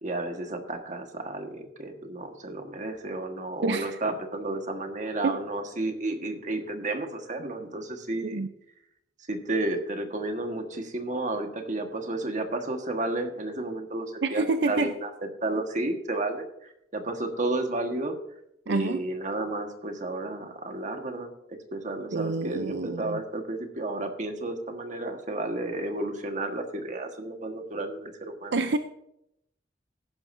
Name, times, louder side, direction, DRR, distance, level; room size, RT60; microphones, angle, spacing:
voice 1, 0.0-8.4 9.3-15.1 15.4-18.2 18.6-28.6, right 2 dB, 45° right, 5 dB, 1.5 m, -32 dB
voice 2, 3.6-4.0 5.2-5.4 8.2-8.5 14.2-14.9 18.7-19.0 22.1-23.2 28.5-28.8, right 3 dB, 75° right, 9 dB, 0.6 m, -27 dB
15.0 x 11.5 x 2.7 m, 0.79 s
head